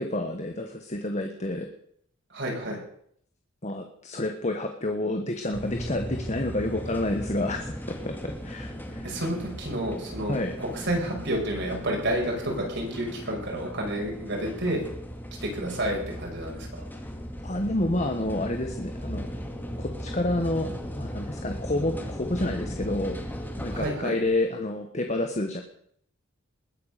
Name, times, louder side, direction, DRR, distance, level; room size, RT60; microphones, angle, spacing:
voice 1, 0.0-1.7 3.6-9.1 10.3-10.5 17.4-19.3 19.8-20.7 21.0-23.2 23.6-25.6, left 1 dB, 35° left, 5 dB, 1.4 m, -29 dB
voice 2, 2.3-2.8 9.0-10.4 10.7-14.9 15.4-16.8 23.7-24.2, right 1 dB, 60° right, 0 dB, 5.8 m, -30 dB
sound 1, 5.5-23.9, equal, 10° left, 2.1 m, -37 dB
21.0 x 9.6 x 6.7 m, 0.67 s
head